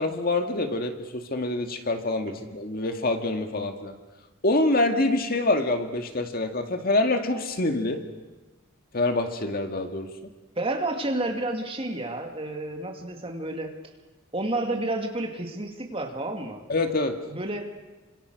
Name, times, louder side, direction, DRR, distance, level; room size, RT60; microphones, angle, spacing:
voice 1, 0.0-3.9 4.4-8.0 8.9-10.1 16.7-17.2, left 2 dB, 45° left, 5 dB, 2.0 m, -26 dB
voice 2, 10.6-13.7 14.3-16.6 17.3-17.8, right 2 dB, 30° right, 3 dB, 2.6 m, -30 dB
28.5 x 26.0 x 6.5 m, 1.1 s
head